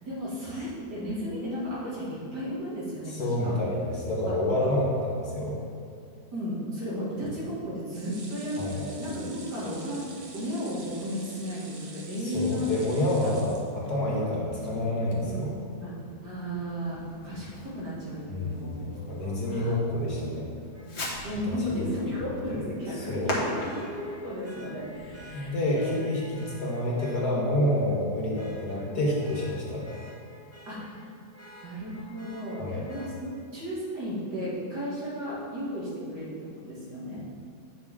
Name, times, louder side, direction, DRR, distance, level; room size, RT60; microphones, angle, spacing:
voice 1, 0.0-3.5 6.3-8.6 9.0-10.1 10.3-13.0 13.2-13.4 15.2-15.5 15.8-15.9 16.2-18.9 19.2-19.7 21.2-25.9 28.8-29.0 30.7-31.0 31.6-37.2, equal, 90° right, -7 dB, 2.7 m, -34 dB
voice 2, 3.1-5.6 8.6-8.9 12.2-15.5 18.3-20.5 21.5-21.9 22.5-22.6 23.1-23.4 25.3-29.9 32.6-32.9, left 1 dB, 70° left, -4 dB, 2.1 m, -28 dB
sound 1, 7.9-14.2 14.6-14.7 15.0-15.1, right 3 dB, 50° right, 1.0 m, -47 dB
Fireworks, 15.1-25.7, left 1 dB, 45° left, 1.5 m, -41 dB
Vehicle horn car horn honking, 20.7-20.9 23.6-27.2 27.7-28.0 28.3-31.0 31.3-33.1 34.9-35.0, equal, 10° right, 1.3 m, -50 dB
9.1 x 6.1 x 3.7 m, 2.3 s
omnidirectional pair, 1.7 m